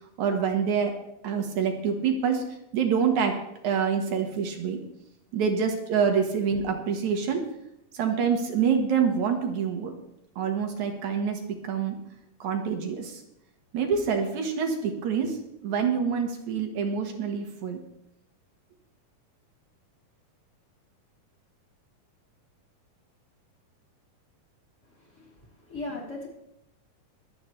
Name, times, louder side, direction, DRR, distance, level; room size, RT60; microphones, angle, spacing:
voice 1, 0.2-0.9 1.2-2.5 2.7-3.4 3.6-4.8 5.3-7.5 7.9-9.9 10.4-12.0 12.4-13.2 13.7-15.4 15.6-17.8, right 6 dB, 65° right, 4 dB, 2.7 m, -26 dB
voice 2, 25.0-26.3, left 2 dB, 20° left, -3 dB, 3.5 m, -38 dB
23.5 x 8.5 x 3.2 m, 0.82 s
omnidirectional pair, 3.8 m